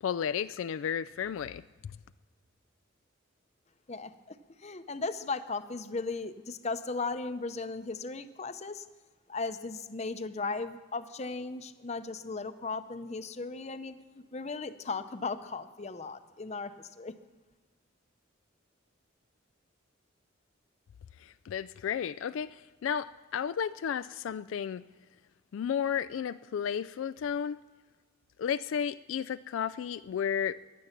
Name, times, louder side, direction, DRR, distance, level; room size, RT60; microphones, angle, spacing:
voice 1, 0.0-1.9 21.2-24.8 25.5-27.6 28.4-30.6, left 8 dB, 75° left, 14 dB, 0.3 m, -33 dB
voice 2, 3.9-8.9 9.3-17.1, left 3 dB, 35° left, 11 dB, 0.6 m, -37 dB
15.5 x 11.0 x 5.8 m, 1.4 s
head